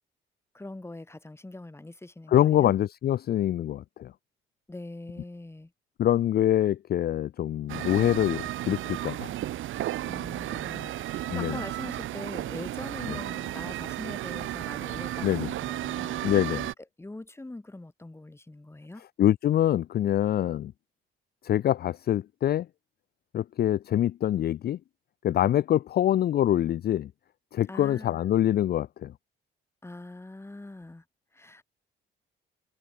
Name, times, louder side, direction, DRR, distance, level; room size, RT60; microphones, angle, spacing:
voice 1, 0.5-2.7 4.7-5.7 10.0-16.2 17.0-19.0 27.7-28.2 29.8-31.0 31.3-31.6, left 2 dB, 10° left, 3.0 m, -43 dB
voice 2, 2.3-4.1 6.0-9.3 11.3-11.6 13.1-13.2 15.2-15.5 16.2-16.7 19.2-20.7 21.4-22.7 23.3-24.8 25.2-27.1 27.5-29.1, left 12 dB, 55° left, 0.5 m, -25 dB
sound 1, 7.7-16.7, right 14 dB, 80° right, 2.0 m, -34 dB
cardioid pair, 90°, 20 cm